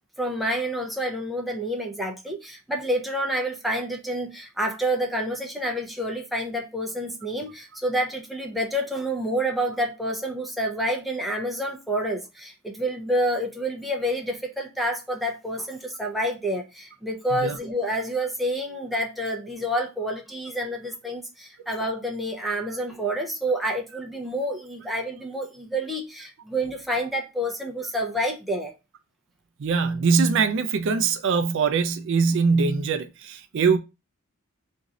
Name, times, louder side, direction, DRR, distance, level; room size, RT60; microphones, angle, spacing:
voice 1, 0.2-28.7, equal, ahead, 0.6 m, -28 dB
voice 2, 29.6-33.8, right 5 dB, 60° right, 0.4 m, -22 dB
3.0 x 2.6 x 3.5 m
head